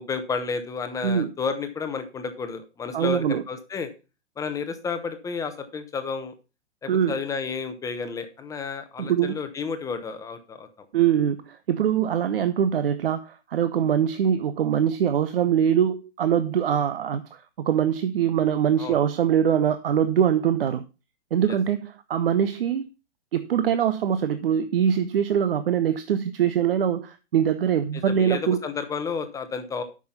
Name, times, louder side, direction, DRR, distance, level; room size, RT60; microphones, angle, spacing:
voice 1, 0.0-3.9 4.4-6.3 6.8-10.9 18.8-19.0 21.5-21.6 27.9-29.8, left 5 dB, 10° left, 0.9 m, -31 dB
voice 2, 2.9-3.4 6.9-7.1 9.0-9.4 10.9-20.9 21.3-22.8 23.3-28.6, right 9 dB, 55° right, 0.8 m, -23 dB
8.5 x 6.1 x 5.5 m
figure-of-eight pair, 120°, 35 cm